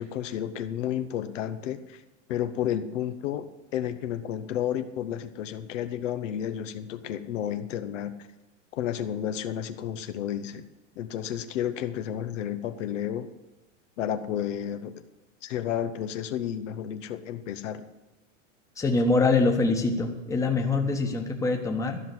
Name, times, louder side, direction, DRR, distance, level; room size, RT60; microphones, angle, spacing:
voice 1, 0.0-2.0 2.3-3.5 3.7-8.1 8.8-10.6 11.0-13.3 14.0-15.0 15.4-17.8, left 10 dB, 70° left, 10 dB, 1.0 m, -31 dB
voice 2, 18.8-22.0, left 3 dB, 10° left, 2 dB, 1.1 m, -24 dB
13.0 x 5.7 x 9.4 m, 1.1 s
supercardioid pair, 145°, 38 cm